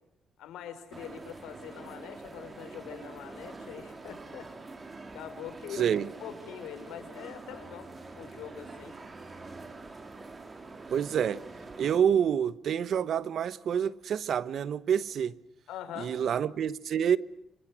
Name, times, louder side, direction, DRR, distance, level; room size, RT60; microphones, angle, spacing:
voice 1, 0.4-4.5 5.1-8.9 15.7-16.2, left 9 dB, 90° left, 4.8 m, -43 dB
sound 1, 0.9-12.0, right 3 dB, 30° right, 3.9 m, -45 dB
voice 2, 5.7-6.1 10.9-11.4 11.8-15.3 16.0-17.2, right 8 dB, 65° right, 1.2 m, -27 dB
29.5 x 25.0 x 6.2 m
cardioid pair, 90°, 0 cm